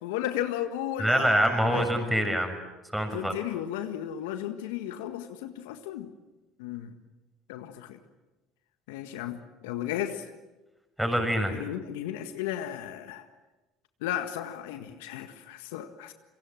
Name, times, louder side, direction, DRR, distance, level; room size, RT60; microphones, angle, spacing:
voice 1, 0.0-1.9 3.1-6.1 6.6-7.0 7.5-8.0 8.9-10.3 11.5-13.2 14.0-16.1, left 11 dB, 75° left, 8 dB, 1.7 m, -34 dB
voice 2, 1.0-2.5 2.9-3.3 11.0-11.6, equal, 5° right, 5 dB, 7.0 m, -25 dB
27.5 x 24.0 x 7.7 m, 1.1 s
hypercardioid pair, 70°, 0 cm